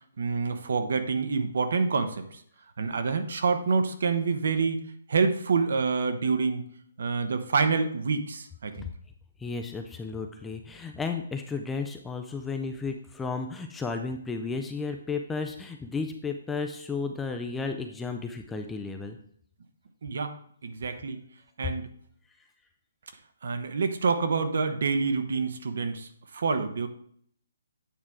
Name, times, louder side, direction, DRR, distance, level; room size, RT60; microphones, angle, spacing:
voice 1, 0.2-2.4 2.8-4.8 5.1-6.7 7.0-8.9 20.0-20.3 20.6-21.2 21.6-21.9 23.4-26.9, right 4 dB, 60° right, 8 dB, 0.9 m, -27 dB
voice 2, 9.4-19.2, left 4 dB, 5° left, 4 dB, 0.3 m, -33 dB
8.7 x 4.5 x 3.7 m, 0.63 s
hypercardioid pair, 175°, 0 cm